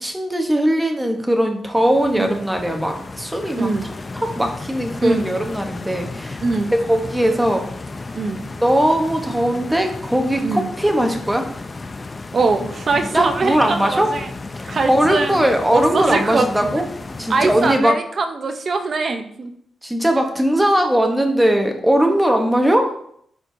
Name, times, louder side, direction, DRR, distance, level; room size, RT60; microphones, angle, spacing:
voice 1, 0.0-3.9 4.2-6.4 6.8-7.7 8.6-11.5 13.0-14.1 14.6-16.9 17.2-17.9 19.8-22.9, right 1 dB, 5° right, 3 dB, 1.1 m, -19 dB
Stream, 1.8-17.8, left 3 dB, 30° left, 0.5 m, -34 dB
voice 2, 6.4-6.7 8.1-8.4 10.4-10.7 12.3-14.3 14.7-16.7 17.3-19.5, right 3 dB, 50° right, 7 dB, 0.8 m, -22 dB
10.5 x 4.4 x 2.7 m, 0.67 s
cardioid pair, 100°, 0 cm